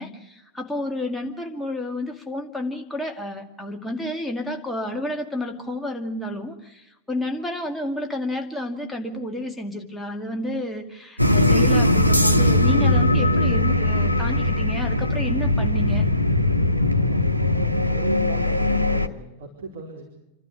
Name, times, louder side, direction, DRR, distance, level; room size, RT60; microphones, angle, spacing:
voice 1, 0.0-16.0, left 1 dB, 5° left, 2 dB, 2.3 m, -31 dB
sound 1, 11.2-19.1, left 1 dB, 90° left, 0.9 m, -20 dB
voice 2, 17.0-20.0, right 3 dB, 60° right, -1 dB, 4.3 m, -37 dB
28.0 x 12.5 x 8.2 m, 0.92 s
figure-of-eight pair, 90°, 0 cm